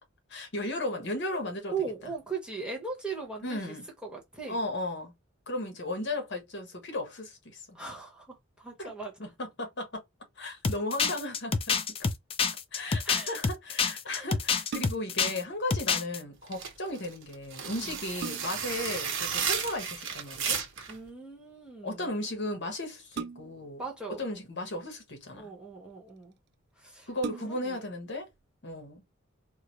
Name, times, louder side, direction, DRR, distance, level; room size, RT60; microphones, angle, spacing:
voice 1, 0.3-1.7 3.4-3.8 4.5-5.1 5.5-7.8 8.8-8.9 9.2-10.0 10.4-11.8 12.7-20.6 21.8-23.8 24.2-25.5 27.1-28.3 28.6-29.0, left 1 dB, 60° left, 1.2 m, -35 dB
voice 2, 1.7-4.6 7.7-9.3 13.0-13.4 14.0-14.3 17.8-18.0 20.9-22.1 23.8-24.3 25.3-26.4 26.7-27.1 27.4-27.9, right 4 dB, 5° right, 1.0 m, -39 dB
sound 1, 10.6-15.4 15.7-16.2, left 5 dB, 30° left, 0.4 m, -27 dB
sound 2, 14.7-15.3 17.3-17.4 17.8-18.8 20.3-20.7 23.1-23.8 24.7-25.4 26.2-26.3 26.6-26.7 27.1-27.8 28.3-28.4, right 5 dB, 55° right, 0.3 m, -40 dB
sound 3, 16.5-21.0, right 6 dB, 75° right, 0.9 m, -33 dB
3.7 x 2.1 x 3.0 m
head